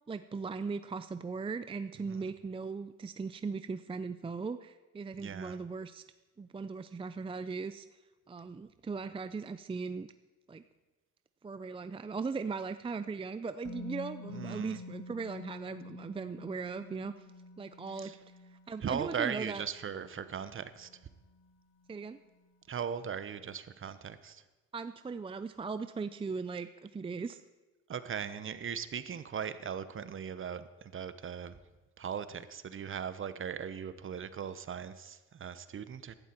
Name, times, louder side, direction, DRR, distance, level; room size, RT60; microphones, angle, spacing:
voice 1, 0.1-6.0 6.4-7.9 8.3-10.1 10.5-10.6 11.4-17.1 17.6-18.2 18.7-19.6 21.9-22.2 24.7-27.4, right 4 dB, 20° right, 11 dB, 0.5 m, -38 dB
voice 2, 5.2-5.6 14.3-14.8 17.9-18.2 18.8-20.9 22.7-24.4 27.9-31.6 32.0-36.1, right 7 dB, 45° right, 13 dB, 0.9 m, -39 dB
Musical instrument, 13.6-21.5 21.8-22.0, left 2 dB, 55° left, 1.6 m, -49 dB
15.5 x 12.0 x 4.5 m, 1.2 s
cardioid pair, 90°, 30 cm